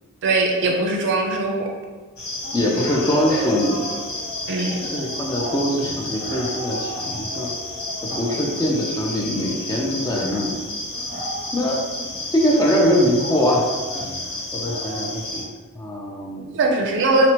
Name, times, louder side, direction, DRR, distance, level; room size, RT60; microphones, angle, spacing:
voice 1, 0.2-1.7 4.5-4.8 16.5-17.3, right 2 dB, 55° right, 2 dB, 0.4 m, -20 dB
sound 1, 2.2-15.4, left 1 dB, 70° left, 0.7 m, -30 dB
voice 2, 2.5-3.8 4.8-7.5 8.0-10.6 11.5-11.8 12.3-13.6 14.5-15.5 15.8-16.6, equal, 15° left, -2 dB, 0.3 m, -22 dB
2.7 x 2.0 x 2.9 m, 1.3 s
head